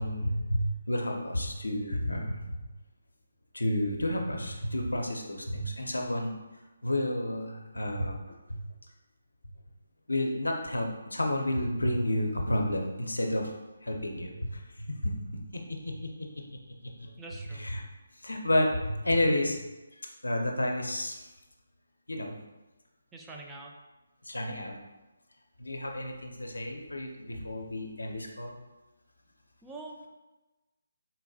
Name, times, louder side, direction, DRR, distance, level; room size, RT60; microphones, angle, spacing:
voice 1, 0.0-2.5 3.5-6.3 6.8-8.6 10.1-13.5 13.8-15.9 17.0-17.1 17.5-17.8 18.2-19.6 19.9-21.2 22.1-22.3 24.2-24.7 25.6-28.5, left 1 dB, 85° left, 2 dB, 0.5 m, -31 dB
voice 2, 17.2-17.6 23.1-23.7 29.6-30.1, right 2 dB, 10° right, -1 dB, 0.3 m, -44 dB
3.9 x 2.3 x 2.6 m, 1.1 s
figure-of-eight pair, 150°, 0 cm